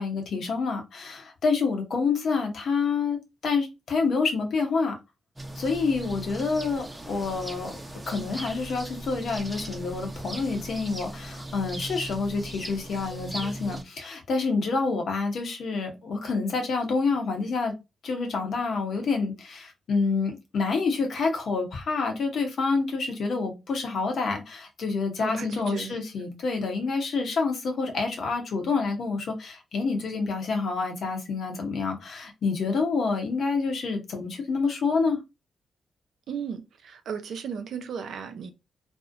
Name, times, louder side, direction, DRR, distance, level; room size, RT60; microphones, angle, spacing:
voice 1, 0.0-4.9 5.6-7.8 8.1-17.7 18.0-35.2, left 4 dB, 65° left, 0.7 m, -28 dB
sound 1, 5.4-13.8, right 1 dB, 15° right, 0.7 m, -38 dB
voice 2, 25.2-26.0 36.3-38.5, right 7 dB, 70° right, 0.4 m, -35 dB
2.6 x 2.0 x 2.5 m
hypercardioid pair, 40°, 0 cm